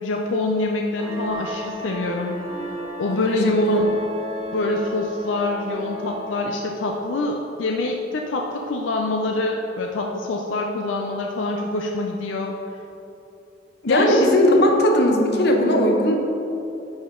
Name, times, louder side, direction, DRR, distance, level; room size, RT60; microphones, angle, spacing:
voice 1, 0.0-2.4 3.0-3.9 4.5-12.6 13.9-14.2, left 2 dB, 90° left, 1 dB, 0.5 m, -25 dB
sound 1, 1.0-7.2, left 1 dB, 35° right, 1.0 m, -35 dB
voice 2, 3.2-3.9 13.8-16.1, left 1 dB, 60° left, 2 dB, 0.9 m, -18 dB
10.5 x 4.3 x 3.7 m, 2.9 s
head